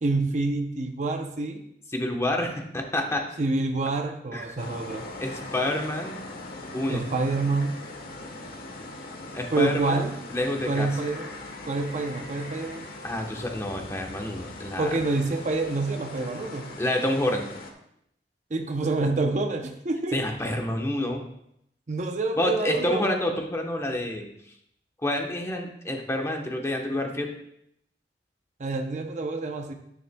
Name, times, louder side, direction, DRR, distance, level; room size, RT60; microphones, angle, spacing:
voice 1, 0.0-1.6 3.4-5.1 6.9-7.8 9.5-10.2 10.7-11.3 11.6-12.9 14.8-16.7 18.5-20.2 21.9-23.0 28.6-29.7, right 3 dB, 45° right, 5 dB, 0.7 m, -27 dB
voice 2, 1.9-3.3 4.3-4.4 5.2-6.2 6.7-7.0 9.3-10.0 10.3-10.9 13.0-14.9 16.8-17.5 20.1-21.2 22.4-24.3 25.0-27.3, left 1 dB, 15° left, 2 dB, 1.0 m, -28 dB
sound 1, 4.6-17.7, left 2 dB, 55° left, 1.2 m, -41 dB
9.9 x 9.5 x 2.3 m, 0.75 s
head